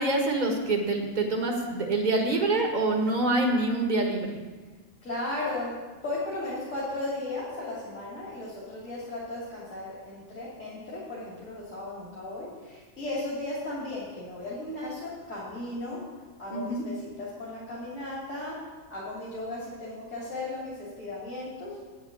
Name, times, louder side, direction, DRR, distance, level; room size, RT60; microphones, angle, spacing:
voice 1, 0.0-4.4 16.5-16.8, right 2 dB, 30° right, 1 dB, 1.7 m, -26 dB
voice 2, 5.0-5.7 6.0-16.0 16.4-18.6 18.9-21.8, left 2 dB, 60° left, -8 dB, 3.3 m, -36 dB
9.2 x 8.0 x 7.8 m, 1.3 s
omnidirectional pair, 1.5 m